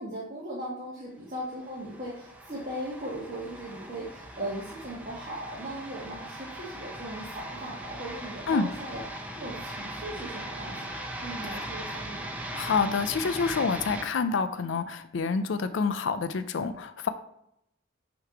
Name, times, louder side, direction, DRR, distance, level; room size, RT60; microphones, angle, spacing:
voice 1, 0.0-12.2, right 1 dB, 40° right, -7 dB, 1.4 m, -38 dB
sound 1, 1.5-14.0, right 1 dB, 5° right, 0.6 m, -39 dB
voice 2, 12.5-17.1, left 5 dB, 70° left, 10 dB, 0.4 m, -28 dB
6.5 x 3.0 x 4.9 m, 0.78 s
head